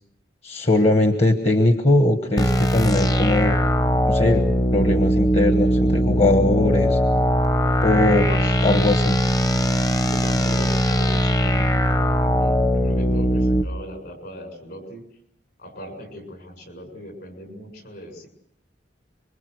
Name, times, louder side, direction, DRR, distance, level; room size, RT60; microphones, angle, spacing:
voice 1, 0.4-3.6 4.1-7.0 7.8-8.2 8.6-9.2, left 2 dB, 40° left, 6 dB, 1.3 m, -20 dB
sound 1, 2.4-13.6, equal, 20° left, 0.9 m, -20 dB
voice 2, 8.2-8.6 10.0-15.0 15.6-18.3, equal, 65° left, 5 dB, 7.1 m, -38 dB
26.0 x 23.5 x 6.5 m, 0.73 s
head